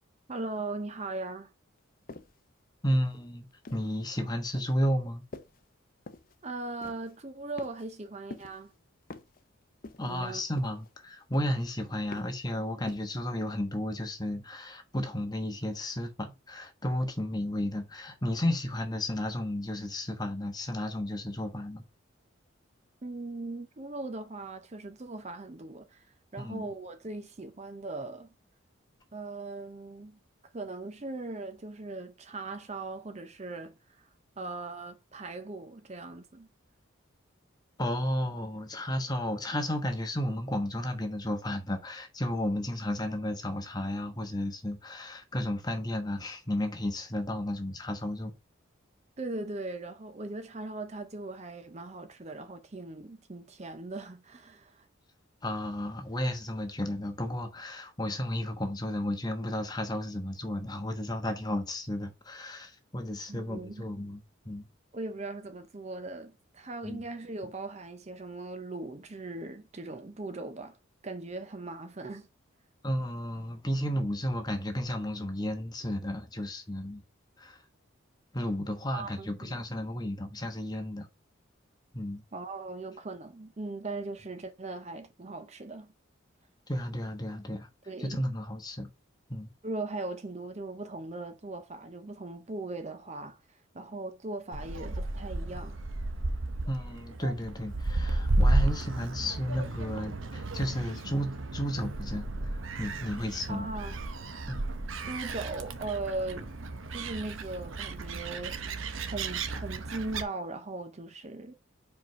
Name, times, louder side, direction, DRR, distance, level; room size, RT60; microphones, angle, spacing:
voice 1, 0.3-1.5 6.4-8.7 10.0-10.4 23.0-28.3 29.1-30.2 30.5-34.1 34.4-36.5 49.2-54.9 63.3-63.9 64.9-70.8 71.0-72.3 78.9-79.6 82.3-85.9 87.9-88.2 89.6-95.8 103.5-104.0 105.1-106.5 106.9-108.6 109.1-111.5, right 2 dB, 35° right, 0.6 m, -39 dB
sound 1, 2.1-2.4 2.9-4.0 4.5-4.8 5.3-5.7 6.1-6.4 6.8-7.2 7.6-8.0 8.3-8.7 9.1-9.4 9.8-10.2 10.6-11.0 11.3-11.7 12.1-12.4 12.9-13.2, left 3 dB, 45° left, 0.6 m, -46 dB
voice 2, 2.8-3.5 3.7-5.2 10.0-21.8 26.4-26.7 37.8-48.3 55.4-64.6 66.8-67.0 72.8-77.0 77.4-77.6 78.3-81.1 81.9-82.2 86.7-87.7 88.0-88.9 89.3-89.5 96.7-103.7 104.5-104.7, left 1 dB, 20° left, 1.1 m, -33 dB
Gull seagull, 94.5-110.2, right 2 dB, 75° right, 0.9 m, -33 dB
5.0 x 4.7 x 5.0 m
head